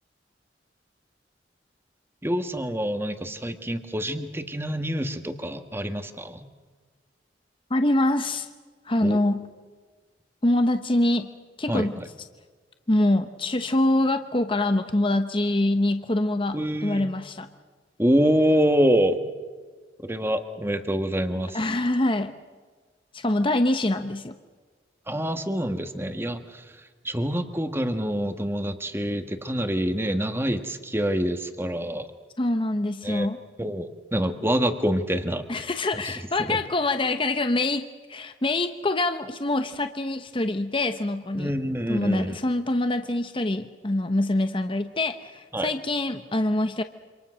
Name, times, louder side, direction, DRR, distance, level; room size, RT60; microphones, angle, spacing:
voice 1, 2.2-6.4 9.0-9.2 11.7-11.9 16.5-17.1 18.0-19.2 20.0-21.6 25.1-26.6 27.0-32.1 33.0-33.3 33.6-35.4 35.9-36.0 36.5-36.6 41.3-42.4 45.5-45.7, equal, 15° right, 7 dB, 1.6 m, -26 dB
voice 2, 7.7-8.5 8.9-9.4 10.4-11.3 11.6-12.0 12.9-17.5 21.5-22.3 23.1-24.4 32.4-33.4 35.5-41.5 41.9-46.8, left 1 dB, 30° left, 8 dB, 0.9 m, -25 dB
27.5 x 26.5 x 6.3 m, 1.4 s
head